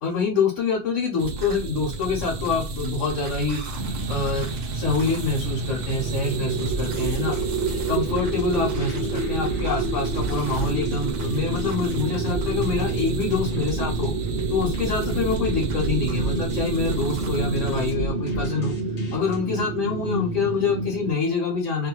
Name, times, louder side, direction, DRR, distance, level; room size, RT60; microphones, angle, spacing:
voice 1, 0.0-3.6 4.1-7.4 7.9-14.1 14.5-18.7 19.1-21.9, left 4 dB, 90° left, -2 dB, 1.2 m, -26 dB
sound 1, 1.2-17.9, right 1 dB, 80° right, 0.9 m, -31 dB
sound 2, 3.8-21.1, right 4 dB, 55° right, 0.7 m, -29 dB
sound 3, 6.4-19.4, right 1 dB, 65° left, 1.2 m, -37 dB
2.7 x 2.3 x 2.9 m, 0.32 s
omnidirectional pair, 1.2 m